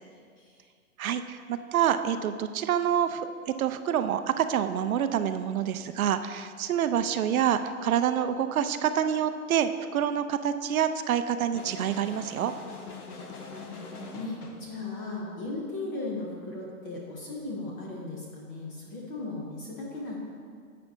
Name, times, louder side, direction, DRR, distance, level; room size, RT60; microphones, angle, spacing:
voice 1, 1.0-12.5, right 9 dB, 70° right, 10 dB, 0.6 m, -27 dB
sound 1, 11.5-14.7, left 4 dB, 90° left, 1.3 m, -42 dB
voice 2, 13.5-20.2, left 2 dB, 15° left, -2 dB, 0.5 m, -37 dB
10.5 x 7.7 x 2.7 m, 2.1 s
hypercardioid pair, 145°, 44 cm